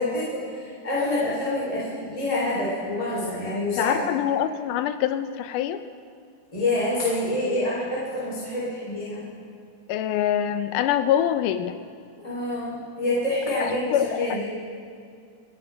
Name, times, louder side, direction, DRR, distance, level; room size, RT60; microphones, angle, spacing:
voice 1, 0.0-3.9 6.5-9.3 12.2-14.5, left 2 dB, 10° left, -8 dB, 3.6 m, -27 dB
voice 2, 3.8-5.8 9.9-11.8 13.6-14.4, left 10 dB, 80° left, 11 dB, 2.1 m, -25 dB
28.5 x 11.0 x 3.5 m, 2.4 s
omnidirectional pair, 3.8 m